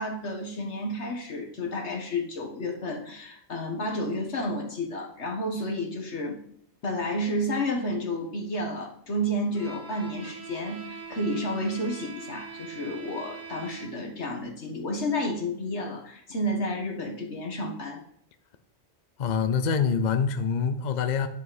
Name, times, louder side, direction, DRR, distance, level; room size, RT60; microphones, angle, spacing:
voice 1, 0.0-6.4 6.8-18.0, left 1 dB, 80° left, 1 dB, 1.8 m, -31 dB
Bowed string instrument, 9.5-14.2, right 6 dB, 15° right, 1.1 m, -42 dB
voice 2, 19.2-21.3, left 6 dB, 50° left, 9 dB, 0.6 m, -25 dB
10.5 x 4.9 x 4.1 m, 0.66 s
omnidirectional pair, 1.1 m